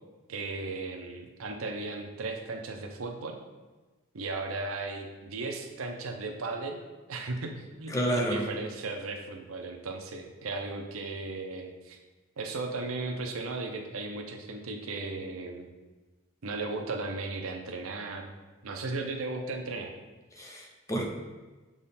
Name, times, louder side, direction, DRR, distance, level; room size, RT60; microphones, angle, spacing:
voice 1, 0.3-3.4 4.1-6.8 7.1-12.0 12.4-15.7 16.4-18.3 18.6-19.9, right 3 dB, 80° right, 3 dB, 0.7 m, -36 dB
voice 2, 7.9-8.4 20.4-21.1, right 1 dB, 15° left, 0 dB, 0.6 m, -29 dB
7.3 x 3.6 x 4.2 m, 1.2 s
head